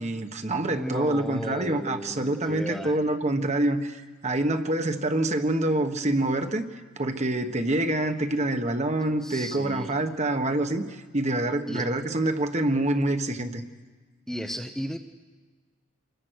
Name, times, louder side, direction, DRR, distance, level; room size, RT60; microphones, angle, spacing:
voice 1, 0.0-6.6 7.0-13.6, right 1 dB, 35° right, 7 dB, 1.3 m, -26 dB
voice 2, 0.7-2.9 9.2-9.9 11.7-11.9 14.3-15.0, equal, ahead, 4 dB, 0.8 m, -34 dB
26.5 x 21.5 x 6.5 m, 1.3 s
head